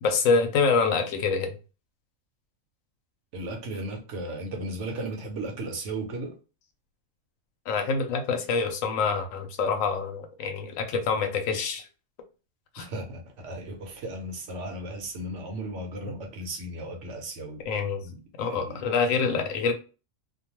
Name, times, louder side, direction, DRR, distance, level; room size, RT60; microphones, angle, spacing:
voice 1, 0.0-1.5 7.7-11.9 12.7-12.9 17.6-18.1 18.4-19.7, left 5 dB, 80° left, 1.0 m, -26 dB
voice 2, 3.3-6.3 12.8-17.6 18.0-18.8, right 1 dB, 65° right, 1.0 m, -36 dB
2.5 x 2.2 x 2.9 m
omnidirectional pair, 1.4 m